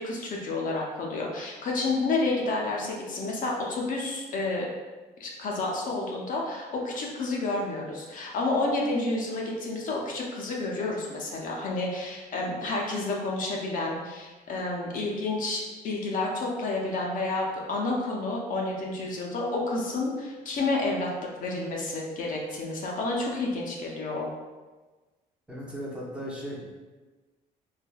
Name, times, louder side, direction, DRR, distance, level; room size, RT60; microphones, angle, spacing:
voice 1, 0.0-4.7 5.2-21.1 21.4-24.3, left 2 dB, 50° left, -2 dB, 0.5 m, -30 dB
voice 2, 25.5-26.7, equal, 5° right, -5 dB, 0.6 m, -37 dB
3.2 x 2.2 x 2.2 m, 1.3 s
cardioid pair, 110°, 17 cm